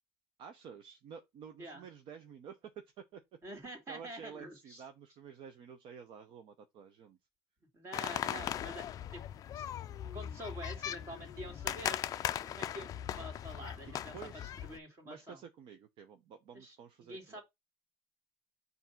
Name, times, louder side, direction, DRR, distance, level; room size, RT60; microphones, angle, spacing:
voice 1, 0.4-3.4 3.9-7.2 14.1-14.4 15.0-17.4, right 7 dB, 50° right, 0.7 m, -51 dB
voice 2, 3.4-4.8 7.7-9.2 9.5-9.7 10.1-12.0 12.5-14.2 14.6-15.4 16.5-17.4, equal, 25° right, 2.4 m, -47 dB
sound 1, 7.9-14.8, left 10 dB, 35° left, 0.4 m, -39 dB
6.9 x 2.7 x 5.8 m
cardioid pair, 175°, 11 cm